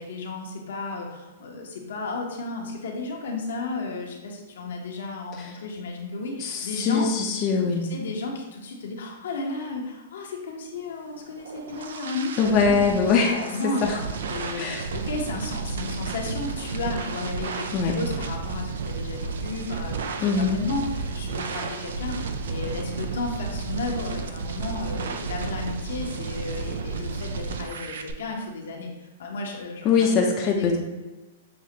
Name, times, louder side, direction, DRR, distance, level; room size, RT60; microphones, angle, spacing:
voice 1, 0.0-7.1 7.9-14.0 14.3-30.1 30.4-30.8, left 3 dB, 75° left, 0 dB, 0.9 m, -33 dB
voice 2, 6.4-7.8 12.4-13.4 13.6-14.0 14.6-14.9 17.7-18.0 20.2-20.6 29.8-30.8, left 5 dB, 35° left, 0 dB, 0.5 m, -22 dB
sound 1, 11.1-28.1, right 4 dB, 75° right, 0.4 m, -32 dB
6.2 x 2.5 x 2.8 m, 1.1 s
hypercardioid pair, 140°, 0 cm